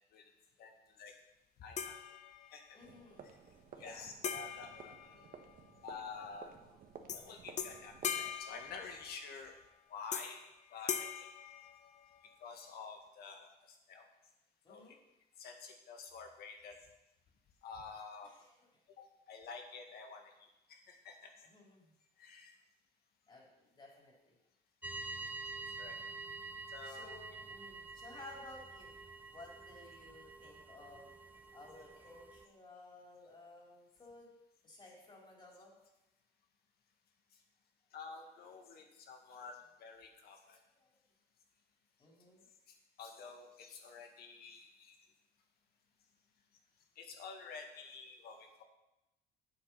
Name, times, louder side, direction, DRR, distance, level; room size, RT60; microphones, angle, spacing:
voice 1, 0.6-1.2 1.6-2.0 2.5-2.8 3.2-3.4 3.8-5.2 5.8-6.5 7.1-9.6 9.9-10.4 10.7-11.3 12.4-14.1 14.7-15.0 15.4-16.8 17.6-18.3 19.0-21.5 22.2-22.5 25.8-26.0 26.7-27.2 37.9-40.6 42.7-44.9 47.0-48.6, left 5 dB, 70° left, 3 dB, 1.9 m, -50 dB
sound 1, 1.8-2.7 4.2-5.8 7.1-7.3 7.6-9.4 10.1-10.5 10.9-12.3, left 8 dB, 45° left, 0.8 m, -42 dB
voice 2, 2.7-3.3 3.7-4.1 14.6-14.9 18.4-18.5 21.5-21.9 23.3-24.1 26.8-28.9 29.3-31.1 31.5-34.3 34.6-35.7 40.8-40.9 42.0-42.4, left 2 dB, 30° left, -3 dB, 4.0 m, -55 dB
sound 2, 2.8-8.3, right 6 dB, 55° right, 1.2 m, -55 dB
sound 3, 24.8-32.5, right 3 dB, 10° right, 0.5 m, -48 dB
9.0 x 8.0 x 5.8 m, 0.93 s
cardioid pair, 110°, 17 cm